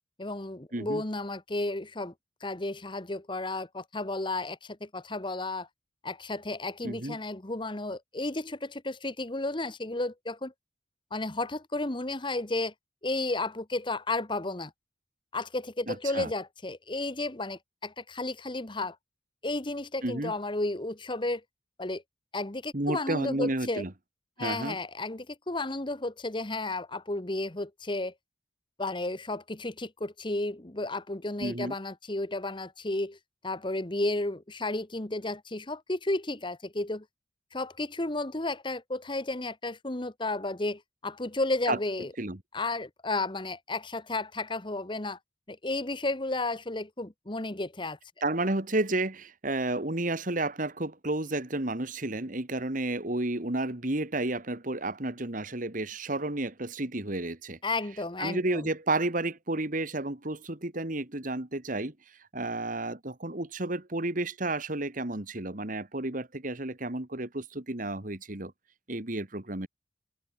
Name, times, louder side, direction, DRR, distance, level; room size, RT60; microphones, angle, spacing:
voice 1, 0.2-2.1 2.4-5.7 6.0-10.5 11.1-12.7 13.0-14.7 15.3-19.0 19.4-21.4 21.8-22.0 22.3-23.8 24.4-28.1 28.8-33.2 33.4-37.0 37.5-42.1 42.5-45.2 45.5-48.0 57.6-58.7, left 2 dB, 25° left, 1.3 m, -33 dB
voice 2, 0.7-1.0 6.8-7.2 15.9-16.3 20.0-20.3 22.7-23.9 24.4-24.8 31.4-31.7 41.7-41.8 42.2-42.4 48.2-57.6 58.2-61.9 62.3-68.5 68.9-69.7, right 2 dB, 45° right, 2.0 m, -31 dB
head